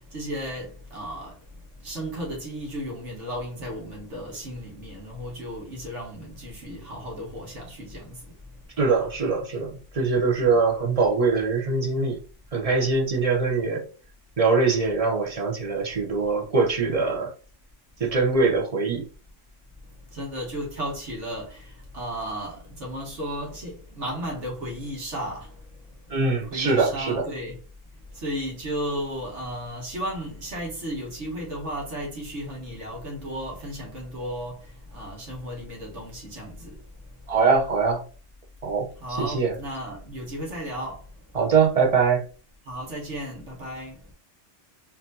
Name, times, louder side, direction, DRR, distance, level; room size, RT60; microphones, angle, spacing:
voice 1, 0.1-1.3 1.8-8.2 10.3-10.6 20.1-25.5 26.5-27.6 28.2-34.6 34.9-36.8 39.0-41.0 42.7-44.0, equal, 65° right, 1.6 m, -34 dB
voice 2, 8.8-12.2 12.5-13.9 14.4-17.3 18.0-19.0 26.1-27.2 37.3-38.0 38.6-38.9 39.2-39.6 41.3-42.2, right 4 dB, 35° right, 0.6 m, -22 dB
4.4 x 2.7 x 2.6 m
omnidirectional pair, 1.3 m